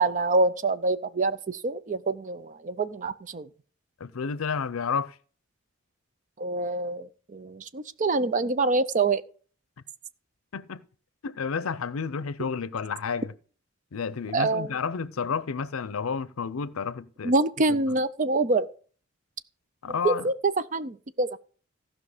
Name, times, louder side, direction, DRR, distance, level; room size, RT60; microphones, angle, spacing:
voice 1, 0.0-3.5 6.4-9.2 14.3-14.7 17.2-18.7 20.0-20.3 20.7-21.4, right 3 dB, 40° right, 0.5 m, -26 dB
voice 2, 4.0-5.1 10.5-10.8 11.2-13.3 13.9-17.3 19.8-20.3, left 5 dB, 85° left, 0.6 m, -31 dB
15.5 x 5.7 x 4.9 m
head